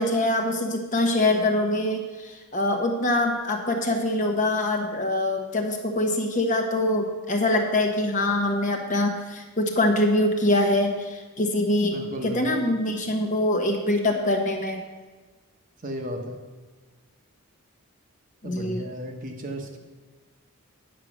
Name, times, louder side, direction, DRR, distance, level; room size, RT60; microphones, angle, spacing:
voice 1, 0.0-14.8 18.4-18.8, left 1 dB, 35° left, 3 dB, 1.1 m, -24 dB
voice 2, 11.9-12.7 15.8-16.4 18.4-19.8, equal, 35° right, 2 dB, 1.1 m, -35 dB
9.2 x 6.6 x 6.1 m, 1.3 s
head